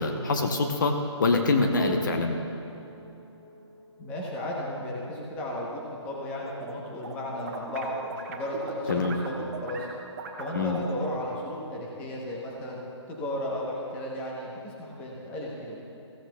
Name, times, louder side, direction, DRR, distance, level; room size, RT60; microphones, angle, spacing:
voice 1, 0.0-2.4 8.9-9.2 10.5-10.8, left 3 dB, 40° left, 4 dB, 0.8 m, -25 dB
sound 1, 1.8-10.4 11.1-11.2, equal, 60° left, 2.1 m, -43 dB
voice 2, 4.0-9.4 9.6-9.9 10.4-12.8 13.1-15.8, left 1 dB, 10° left, -3 dB, 0.8 m, -34 dB
sound 2, 6.2-6.7 7.0-11.2, right 4 dB, 35° right, 1.1 m, -39 dB
15.0 x 13.0 x 2.3 m, 2.8 s
hypercardioid pair, 170°, 15 cm